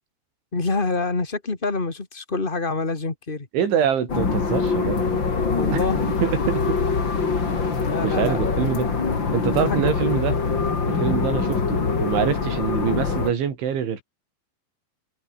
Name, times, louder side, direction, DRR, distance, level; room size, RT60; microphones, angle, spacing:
voice 1, 0.5-3.5 5.5-6.1 7.8-8.4 9.7-9.9, left 3 dB, 60° left, 0.5 m, -26 dB
voice 2, 3.5-5.1 5.7-5.8 6.2-6.8 8.0-8.9 9.3-10.4 10.9-14.0, right 8 dB, 80° right, 6.2 m, -25 dB
sound 1, 4.1-13.3, left 4 dB, 30° left, 3.1 m, -24 dB
omnidirectional pair, 5.3 m